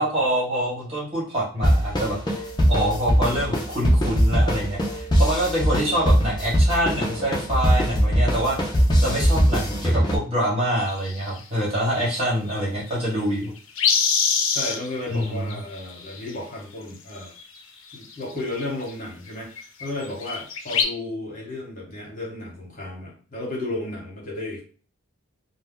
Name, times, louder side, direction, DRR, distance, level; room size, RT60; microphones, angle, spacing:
voice 1, 0.0-2.3 2.7-8.7 9.0-13.5 15.1-15.4, equal, 30° right, -6 dB, 1.3 m, -25 dB
zeprock groove, 1.6-10.2, equal, 20° left, 0.6 m, -21 dB
sound 1, 10.9-11.4 12.5-12.6 12.9-13.0 13.2-14.9 15.2-16.3 17.4-17.6 17.9-18.9 19.3-19.4 19.6-19.9 20.2-20.8, left 6 dB, 70° left, 0.5 m, -24 dB
voice 2, 14.5-17.3 17.9-24.6, left 2 dB, 40° left, -3 dB, 1.2 m, -33 dB
2.8 x 2.1 x 3.7 m, 0.40 s
head